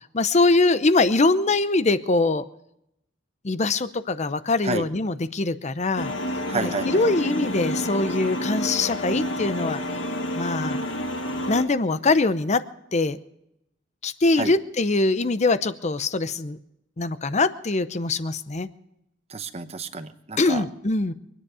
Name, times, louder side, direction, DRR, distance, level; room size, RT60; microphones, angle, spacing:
voice 1, 0.1-2.4 3.4-6.1 6.5-9.8 10.4-10.8 11.5-12.6 12.9-13.2 14.0-16.6 17.0-18.7 20.4-21.1, left 3 dB, 35° left, 14 dB, 0.7 m, -23 dB
sound 1, 6.0-11.6, equal, 75° left, 1.5 m, -29 dB
voice 2, 6.5-7.0 14.4-14.5 19.3-20.6, right 3 dB, 35° right, 10 dB, 0.9 m, -30 dB
24.5 x 10.0 x 4.9 m, 0.81 s
head